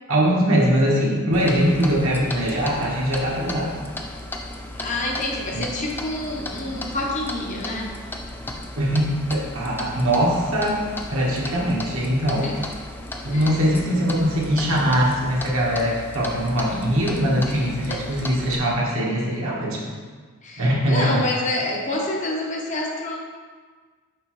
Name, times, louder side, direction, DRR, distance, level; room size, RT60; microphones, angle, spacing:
voice 1, 0.1-3.7 5.5-5.6 8.8-12.5 13.2-19.8 20.6-21.2, equal, 65° right, -4 dB, 1.3 m, -22 dB
Clock, 1.3-18.6, left 1 dB, 10° left, 0.3 m, -35 dB
voice 2, 4.7-8.0 12.4-12.6 13.3-13.7 17.4-18.2 20.4-23.2, left 1 dB, 35° left, -2 dB, 0.8 m, -28 dB
6.6 x 4.6 x 3.1 m, 1.5 s
head